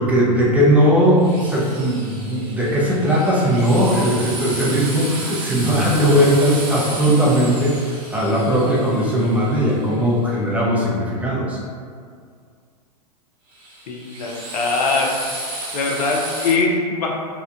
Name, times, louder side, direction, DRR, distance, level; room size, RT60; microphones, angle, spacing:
voice 1, 0.0-7.8 8.1-11.6, equal, 5° right, -5 dB, 0.5 m, -18 dB
Drill, 1.2-10.1 13.5-16.5, right 2 dB, 35° right, 0.9 m, -33 dB
voice 2, 13.9-15.2 15.7-17.2, left 3 dB, 65° left, 0 dB, 0.5 m, -22 dB
2.9 x 2.0 x 2.5 m, 2.2 s
hypercardioid pair, 105°, 21 cm